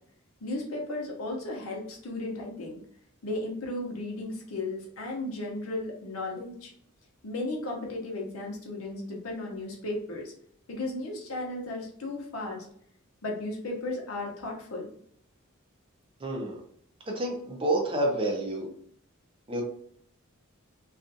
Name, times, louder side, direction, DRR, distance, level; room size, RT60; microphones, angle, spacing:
voice 1, 0.4-2.8 3.2-6.7 7.2-10.3 10.7-12.6 13.2-14.9, left 2 dB, 70° left, -1 dB, 0.8 m, -35 dB
voice 2, 16.2-16.6 17.1-18.7 19.5-19.6, right 1 dB, 25° right, 1 dB, 0.5 m, -28 dB
2.5 x 2.3 x 2.6 m, 0.64 s
head